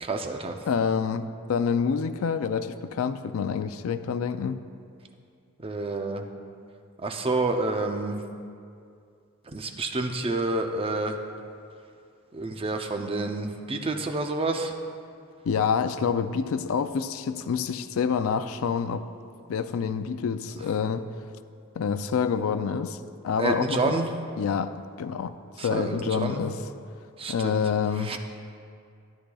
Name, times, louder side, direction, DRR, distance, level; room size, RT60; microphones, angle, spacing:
voice 1, 0.0-0.6 5.6-6.2 7.0-8.2 9.5-11.1 12.3-14.7 23.4-24.1 25.6-26.4 27.2-27.6 28.0-28.2, right 2 dB, 25° right, 4 dB, 0.6 m, -28 dB
voice 2, 0.7-4.6 15.5-19.1 19.5-21.1 21.8-23.0 23.2-24.0 24.4-26.6 27.3-28.2, left 6 dB, 90° left, 11 dB, 0.4 m, -27 dB
12.5 x 9.9 x 2.3 m, 2.3 s
head